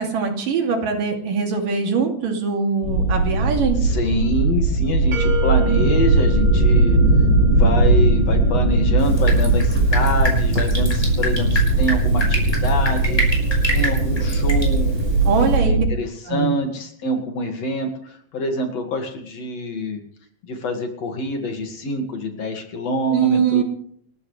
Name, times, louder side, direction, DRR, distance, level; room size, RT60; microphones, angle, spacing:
voice 1, 0.0-3.8 15.3-15.7 16.3-16.5 23.1-23.6, right 5 dB, 85° right, 2 dB, 4.3 m, -22 dB
sound 1, 2.8-15.9, right 2 dB, 35° right, 6.5 m, -18 dB
voice 2, 3.8-7.0 7.6-13.4 13.7-15.0 15.6-20.0 20.4-23.6, left 1 dB, 55° left, 4 dB, 3.1 m, -26 dB
sound 2, 5.1-8.0, left 4 dB, 60° right, 4.6 m, -31 dB
Drip, 9.0-15.6, equal, 5° left, 5.6 m, -28 dB
29.5 x 13.5 x 3.3 m, 0.64 s
omnidirectional pair, 3.8 m